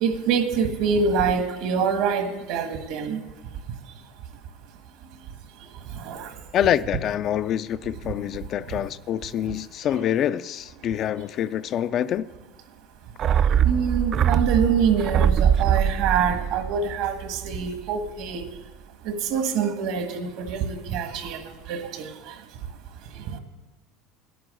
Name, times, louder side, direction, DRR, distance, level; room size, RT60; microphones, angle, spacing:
voice 1, 0.0-3.2 6.0-6.3 10.0-10.1 13.6-18.4 19.0-22.3, right 6 dB, 65° right, 1.5 m, -25 dB
voice 2, 6.5-12.3, left 10 dB, 40° left, 0.3 m, -26 dB
sound 1, 13.2-17.8 18.1-18.2, right 8 dB, 40° right, 0.3 m, -22 dB
10.5 x 9.2 x 7.5 m
supercardioid pair, 140°, 0 cm